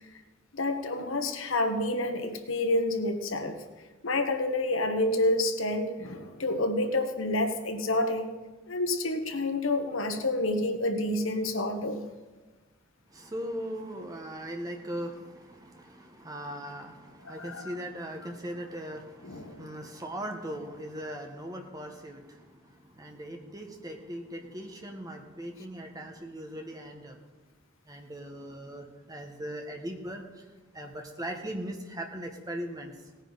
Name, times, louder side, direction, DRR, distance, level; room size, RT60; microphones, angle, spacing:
voice 1, 0.5-3.6 4.0-8.3 8.7-12.1 17.2-17.7 19.2-19.7, left 1 dB, 80° left, 6 dB, 1.2 m, -29 dB
voice 2, 13.1-27.2 27.9-30.5 30.7-32.9, equal, 20° right, 3 dB, 1.3 m, -39 dB
18.0 x 9.5 x 4.1 m, 1.3 s
head